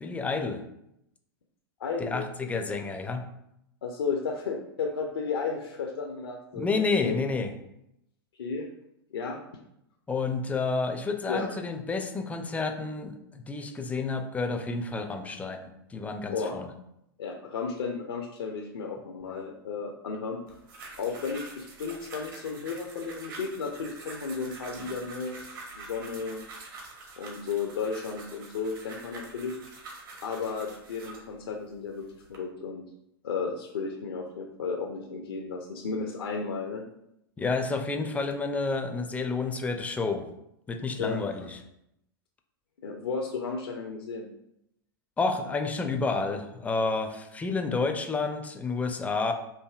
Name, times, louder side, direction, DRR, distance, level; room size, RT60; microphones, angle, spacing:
voice 1, 0.0-0.6 2.0-3.2 6.5-7.5 10.1-16.7 37.4-40.3 40.7-41.6 45.2-49.3, left 4 dB, 10° left, 6 dB, 0.4 m, -30 dB
voice 2, 1.8-2.3 3.8-7.1 8.4-8.7 9.1-9.4 11.3-11.5 16.3-16.6 17.2-20.6 21.0-25.4 25.8-26.4 27.2-29.6 30.2-32.8 33.2-36.8 41.0-41.2 42.8-44.3, left 5 dB, 75° left, 2 dB, 0.4 m, -33 dB
sound 1, 20.5-31.3 31.9-32.4, right 3 dB, 60° right, 1.2 m, -46 dB
4.5 x 2.6 x 2.3 m, 0.81 s
figure-of-eight pair, 100°, 13 cm